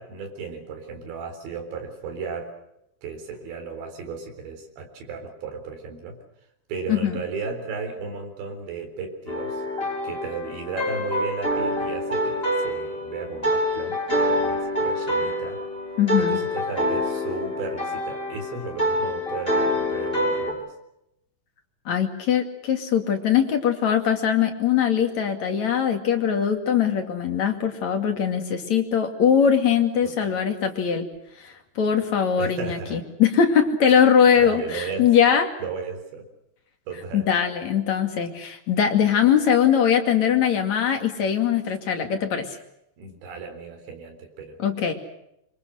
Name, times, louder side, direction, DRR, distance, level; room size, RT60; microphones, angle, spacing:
voice 1, 0.0-2.5 3.0-6.2 6.7-9.6 10.0-14.0 14.3-15.6 16.2-20.7 30.0-30.3 32.4-33.0 34.4-35.1 35.6-36.3 36.9-37.3 43.0-44.6, right 4 dB, 80° right, 4 dB, 6.3 m, -35 dB
voice 2, 6.9-7.2 16.0-16.4 21.9-31.1 31.4-35.5 37.1-42.6 44.6-44.9, left 8 dB, 45° left, 4 dB, 3.3 m, -21 dB
sound 1, 9.3-20.5, left 1 dB, 10° left, 6.1 m, -26 dB
26.0 x 25.5 x 6.4 m, 0.81 s
omnidirectional pair, 5.1 m